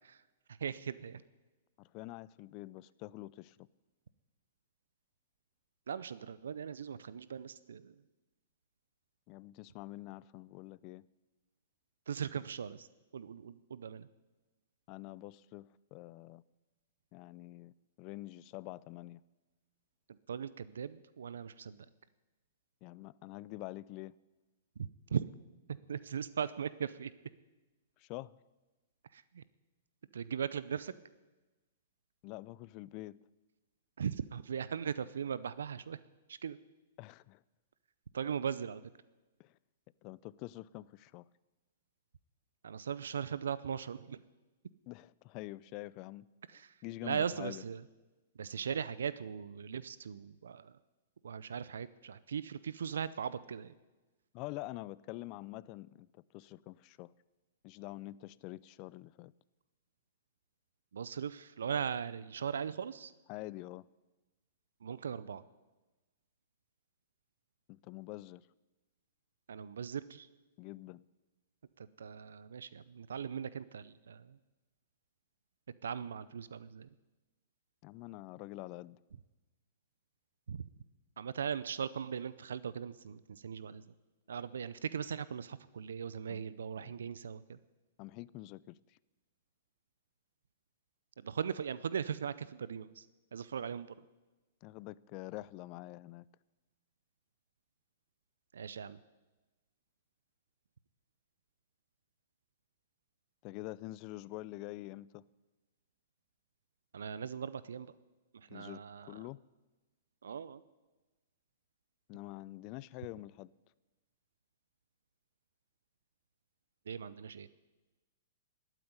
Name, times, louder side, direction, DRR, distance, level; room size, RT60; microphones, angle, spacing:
voice 1, 0.6-1.2 5.9-7.9 12.1-12.9 13.1-14.1 20.3-21.8 24.8-25.2 25.9-27.1 29.1-29.4 30.1-30.9 34.0-36.0 36.3-36.6 38.1-38.8 42.6-44.2 46.5-46.7 47.0-47.8 48.4-50.8 51.2-53.7 60.9-63.1 64.8-65.4 69.5-70.3 72.0-74.4 75.8-76.9 80.5-80.7 81.2-83.8 84.3-87.6 91.2-93.0 93.3-93.9 98.5-99.0 106.9-107.9 108.3-109.1 110.2-110.6 116.9-117.5, right 7 dB, 75° right, 0.5 m, -39 dB
voice 2, 1.8-3.7 9.3-11.0 14.9-16.4 17.1-19.2 22.8-24.1 28.0-28.3 32.2-33.2 37.0-37.4 39.4-39.5 40.0-41.2 44.9-46.3 46.5-47.6 54.3-57.1 57.6-59.3 63.3-63.9 67.7-68.4 70.6-71.1 77.8-79.0 86.3-86.4 86.8-86.9 88.0-89.0 94.6-96.2 103.4-105.2 108.5-109.4 112.1-113.5, left 18 dB, 40° left, 0.4 m, -46 dB
12.0 x 9.1 x 9.8 m
hypercardioid pair, 110°, 0 cm